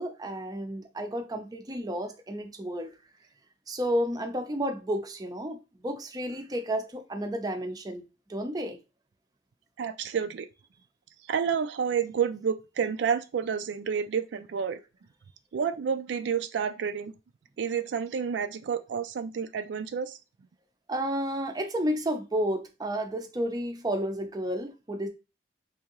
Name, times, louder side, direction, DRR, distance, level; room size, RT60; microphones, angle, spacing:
voice 1, 0.0-2.9 3.7-8.0 8.3-8.8 20.9-25.1, equal, 20° right, 0.5 m, -31 dB
voice 2, 9.8-10.5 11.3-14.8 15.5-17.1 17.6-20.2, right 7 dB, 85° right, 0.4 m, -29 dB
3.5 x 2.8 x 2.9 m
head